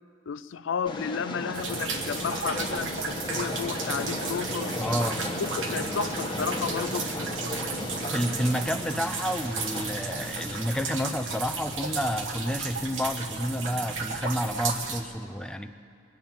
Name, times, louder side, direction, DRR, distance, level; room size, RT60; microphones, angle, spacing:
voice 1, 0.3-4.8 5.4-7.1, left 6 dB, 65° left, 0.4 m, -32 dB
Train, 0.9-10.9, left 1 dB, 25° left, 1.2 m, -35 dB
sound 1, 1.5-15.0, right 4 dB, 70° right, 1.2 m, -34 dB
sound 2, 4.6-14.4, right 4 dB, 35° right, 1.3 m, -49 dB
voice 2, 4.7-5.3 8.1-15.7, equal, 5° left, 0.5 m, -30 dB
22.0 x 9.1 x 7.1 m
head